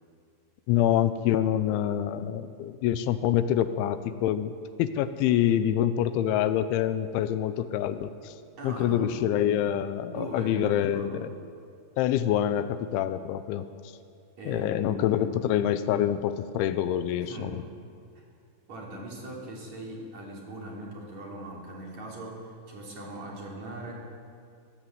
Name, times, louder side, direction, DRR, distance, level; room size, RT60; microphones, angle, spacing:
voice 1, 0.7-4.5 4.8-8.3 8.6-11.3 12.0-13.7 14.5-17.6, left 11 dB, 85° left, 12 dB, 3.1 m, -26 dB
voice 2, 8.6-9.2 10.1-11.2 14.4-15.4 17.3-17.6 18.7-23.9, right 1 dB, 40° right, -2 dB, 4.1 m, -40 dB
22.0 x 14.5 x 8.0 m, 2.3 s
omnidirectional pair, 5.4 m